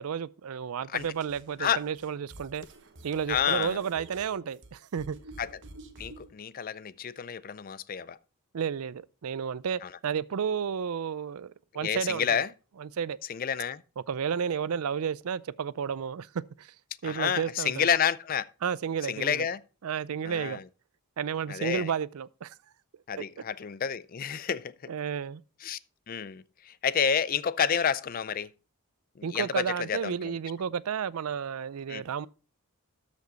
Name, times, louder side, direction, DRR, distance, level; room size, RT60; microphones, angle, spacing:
voice 1, 0.0-2.6 3.0-5.2 8.5-12.4 12.8-13.2 14.0-16.3 16.6-16.7 17.0-17.9 18.6-19.5 19.8-20.6 21.2-22.5 23.2-23.3 24.9-25.4 29.2-32.3, right 7 dB, 80° right, 0.4 m, -32 dB
sound 1, 1.0-6.3, right 2 dB, 55° right, 1.1 m, -49 dB
voice 2, 3.3-3.8 5.4-5.5 6.0-8.2 9.8-9.9 11.7-12.5 13.3-13.8 17.0-18.5 19.0-19.6 20.3-20.6 21.5-21.9 23.1-24.7 25.6-25.8 26.1-28.5 29.2-30.4 31.9-32.0, left 7 dB, 40° left, 0.4 m, -29 dB
13.0 x 5.2 x 3.9 m
head